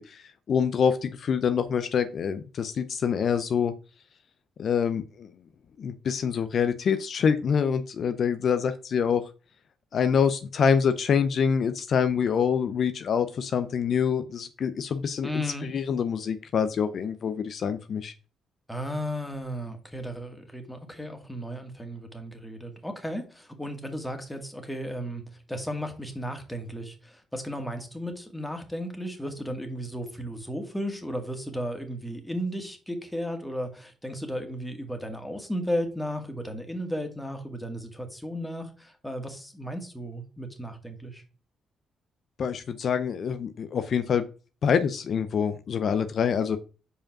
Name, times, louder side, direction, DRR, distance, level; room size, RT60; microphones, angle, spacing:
voice 1, 0.0-3.7 4.6-5.3 5.8-9.3 9.9-18.1 42.4-44.3 44.6-46.6, left 7 dB, 60° left, 10 dB, 0.6 m, -26 dB
voice 2, 15.2-15.7 18.7-25.2 25.5-41.2, equal, 10° left, 5 dB, 2.0 m, -34 dB
5.0 x 5.0 x 5.9 m, 0.36 s
supercardioid pair, 55°, 0 cm